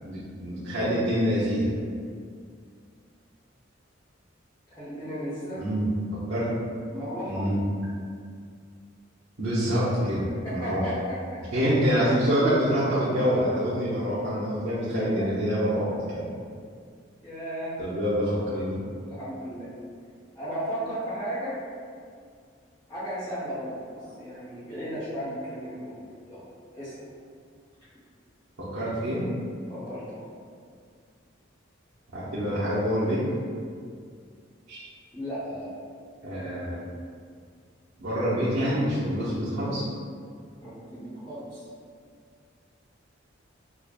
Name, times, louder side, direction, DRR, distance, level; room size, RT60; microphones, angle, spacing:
voice 1, 0.0-1.7 5.6-5.9 6.3-6.5 7.3-7.6 9.4-10.8 11.5-16.2 17.8-18.8 28.7-29.3 32.1-33.2 34.7-34.9 36.2-36.8 38.0-39.8, equal, 85° right, -12 dB, 0.9 m, -26 dB
voice 2, 4.8-5.6 6.9-7.5 10.4-11.4 17.2-17.7 19.0-19.7 20.3-21.6 22.9-26.0 26.3-26.4 26.7-26.9 29.7-30.2 35.1-35.7 40.6-41.6, equal, 15° left, -14 dB, 1.0 m, -35 dB
5.0 x 2.4 x 2.4 m, 2.2 s
head